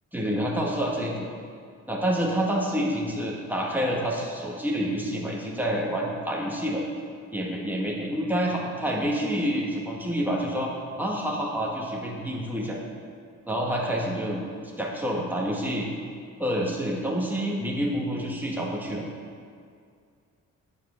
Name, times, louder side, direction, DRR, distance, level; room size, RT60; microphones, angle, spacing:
voice 1, 0.1-1.3 1.9-6.8 7.3-10.7 11.0-12.8 13.5-14.4 14.8-15.9 16.4-19.1, equal, 5° right, -2 dB, 1.8 m, -28 dB
9.4 x 5.0 x 7.9 m, 2.2 s
cardioid pair, 105°, 30 cm